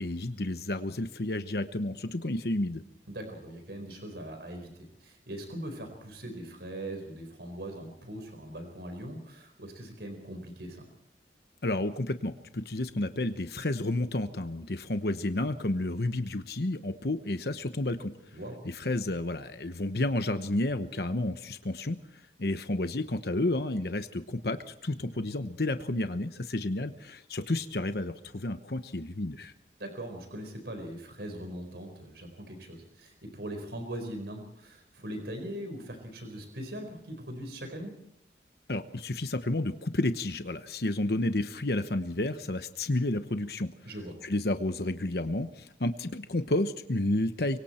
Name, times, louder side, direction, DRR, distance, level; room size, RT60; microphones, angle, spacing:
voice 1, 0.0-2.8 11.6-18.1 18.6-29.5 38.7-43.7 44.2-47.6, left 2 dB, 60° left, 8 dB, 1.0 m, -31 dB
voice 2, 3.1-4.7 5.0-10.9 18.3-18.6 25.0-25.1 29.8-37.9 43.8-44.1, right 1 dB, 70° right, 5 dB, 4.5 m, -40 dB
25.5 x 23.5 x 4.4 m, 0.73 s
head